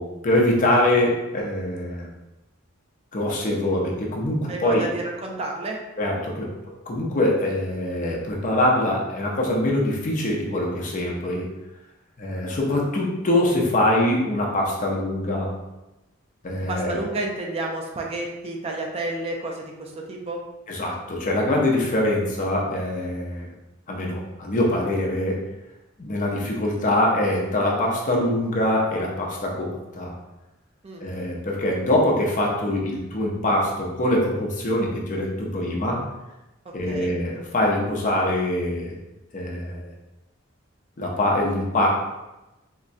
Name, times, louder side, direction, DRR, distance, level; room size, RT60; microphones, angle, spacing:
voice 1, 0.0-2.1 3.1-4.9 6.0-6.5 6.9-11.5 12.2-15.5 16.4-17.0 20.7-23.5 23.9-25.4 26.0-30.1 31.0-36.0 36.7-39.0 39.3-39.9 41.0-41.9, left 1 dB, 40° left, -2 dB, 0.6 m, -23 dB
voice 2, 4.5-5.8 16.7-20.4 30.8-31.0 36.9-37.1, right 2 dB, 30° right, 0 dB, 0.4 m, -30 dB
3.7 x 2.1 x 2.5 m, 1.0 s
head